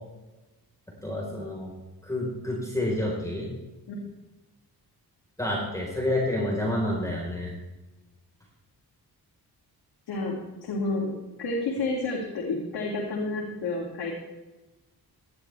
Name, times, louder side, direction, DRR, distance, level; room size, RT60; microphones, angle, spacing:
voice 1, 1.0-1.7 2.0-3.5 5.4-7.5, left 1 dB, 10° left, -3 dB, 4.2 m, -29 dB
voice 2, 10.1-11.1 11.4-14.1, left 2 dB, 80° left, -3 dB, 2.9 m, -30 dB
18.0 x 13.0 x 3.4 m, 1.1 s
cardioid pair, 105°, 39 cm